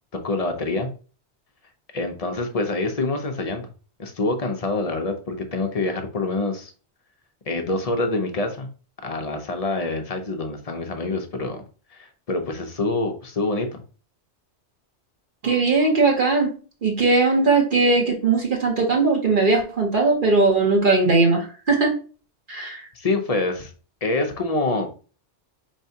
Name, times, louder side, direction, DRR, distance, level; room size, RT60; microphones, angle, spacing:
voice 1, 0.1-0.9 1.9-3.7 4.0-6.7 7.5-8.7 9.0-11.6 11.9-13.8 22.9-23.7 24.0-24.9, left 2 dB, 40° left, 5 dB, 0.6 m, -26 dB
voice 2, 15.4-16.5 16.8-21.9 22.5-22.9, right 3 dB, 50° right, 0 dB, 1.2 m, -19 dB
4.6 x 3.2 x 2.7 m, 0.37 s
omnidirectional pair, 1.2 m